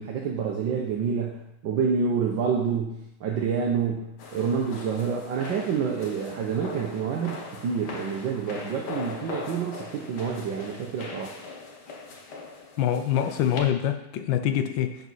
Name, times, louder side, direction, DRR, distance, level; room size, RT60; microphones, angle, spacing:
voice 1, 0.0-11.3, right 6 dB, 75° right, 1.6 m, -28 dB
sound 1, 4.2-13.6, left 4 dB, 60° left, 1.7 m, -40 dB
voice 2, 12.8-15.1, left 10 dB, 75° left, 1.3 m, -25 dB
11.0 x 5.4 x 4.2 m
omnidirectional pair, 2.1 m